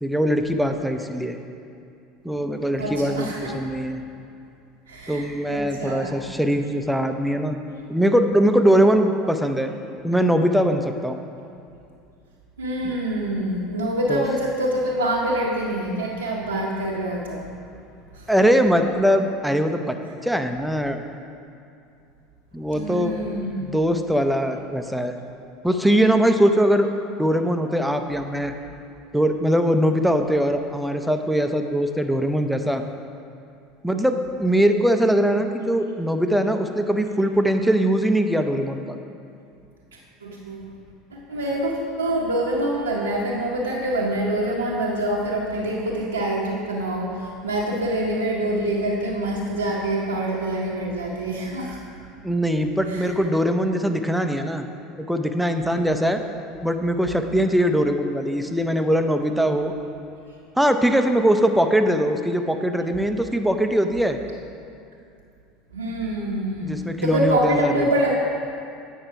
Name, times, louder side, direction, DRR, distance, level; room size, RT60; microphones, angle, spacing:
voice 1, 0.0-1.4 2.2-4.0 5.1-7.6 7.9-9.7 10.0-11.2 12.8-13.0 14.1-14.2 18.3-20.0 20.2-21.0 22.5-23.1 23.6-25.2 25.6-26.9 27.2-28.5 29.1-32.8 33.8-39.0 52.2-54.6 55.0-56.2 56.6-59.7 60.6-64.2 66.6-67.9, equal, ahead, 6 dB, 0.6 m, -21 dB
voice 2, 2.8-3.6 4.9-6.3 12.6-17.5 18.1-18.3 22.7-23.6 40.2-40.7 41.1-51.8 52.9-53.1 65.7-68.1, right 1 dB, 85° right, -6 dB, 0.8 m, -25 dB
8.7 x 5.5 x 4.7 m, 2.5 s
figure-of-eight pair, 75°, 0 cm